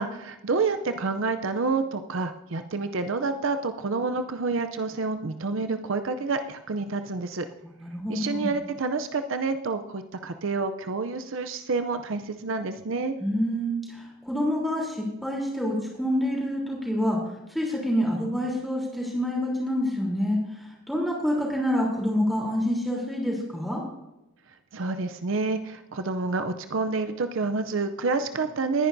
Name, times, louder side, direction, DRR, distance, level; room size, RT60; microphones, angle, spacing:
voice 1, 0.0-7.5 8.1-13.2 24.7-28.9, right 4 dB, 65° right, 8 dB, 0.6 m, -28 dB
voice 2, 7.6-8.5 13.2-17.2 17.5-23.8, equal, ahead, -3 dB, 3.4 m, -27 dB
20.0 x 10.0 x 2.7 m, 0.92 s
head